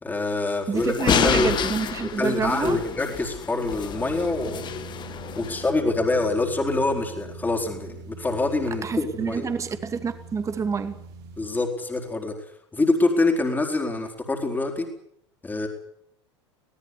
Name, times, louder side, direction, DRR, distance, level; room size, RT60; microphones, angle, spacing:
voice 1, 0.0-1.5 2.2-4.7 5.4-9.5 11.4-12.3 12.7-14.9 15.4-15.7, left 2 dB, 10° left, 3 dB, 4.3 m, -25 dB
voice 2, 0.7-2.8 8.8-11.0, right 5 dB, 20° right, 9 dB, 2.3 m, -27 dB
sound 1, 0.8-5.7, left 8 dB, 30° left, 2.0 m, -28 dB
sound 2, 3.9-11.5, right 4 dB, 55° right, 4.0 m, -42 dB
21.5 x 18.5 x 9.9 m, 0.73 s
figure-of-eight pair, 80°, 15 cm